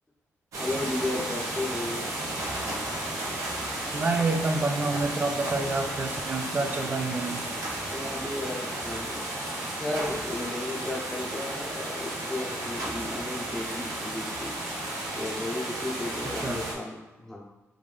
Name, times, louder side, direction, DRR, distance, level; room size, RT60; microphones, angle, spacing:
sound 1, 0.5-16.7, right 1 dB, 85° right, 0.9 m, -33 dB
voice 1, 0.6-2.1 7.9-9.2 9.8-14.5 15.1-17.4, left 1 dB, 5° left, 0 dB, 0.7 m, -34 dB
voice 2, 3.9-7.4 16.4-16.6, right 3 dB, 30° right, 4 dB, 0.4 m, -28 dB
3.6 x 2.6 x 3.3 m, 1.1 s
cardioid pair, 80°, 5 cm